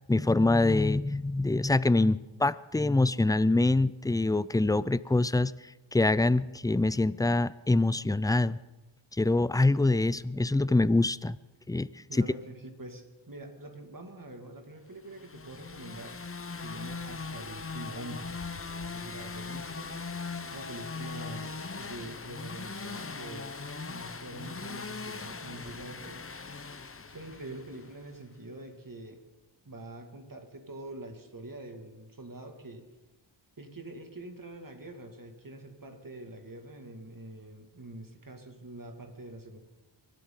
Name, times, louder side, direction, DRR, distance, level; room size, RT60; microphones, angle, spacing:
voice 1, 0.1-5.5 5.9-8.6 9.2-11.4 11.7-11.9, left 2 dB, 10° left, 17 dB, 0.4 m, -25 dB
voice 2, 12.1-16.2 16.6-18.3 18.8-19.9 20.4-23.5 23.9-26.2 27.1-29.2 29.7-32.9 33.6-39.6, right 1 dB, 40° right, 5 dB, 2.2 m, -45 dB
sound 1, 15.1-28.0, left 4 dB, 25° left, 0.8 m, -40 dB
23.5 x 13.0 x 3.9 m, 1.1 s
cardioid pair, 50°, 48 cm